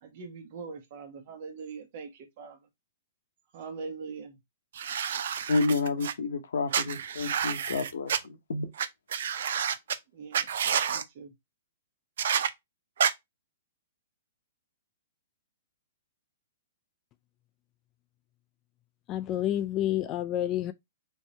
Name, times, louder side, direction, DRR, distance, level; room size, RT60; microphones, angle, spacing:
voice 1, 0.0-2.6 3.5-4.4 10.1-11.3, right 5 dB, 55° right, 1.1 m, -42 dB
sound 1, 4.7-6.1 6.7-8.2 8.8-8.9 9.1-10.0 10.3-11.0 12.2-12.5 13.0-13.1, right 8 dB, 70° right, 0.4 m, -29 dB
voice 2, 5.5-8.7, left 3 dB, 80° left, 0.8 m, -30 dB
voice 3, 19.1-20.7, left 12 dB, 30° left, 0.3 m, -29 dB
3.6 x 3.1 x 3.0 m
hypercardioid pair, 130°, 0 cm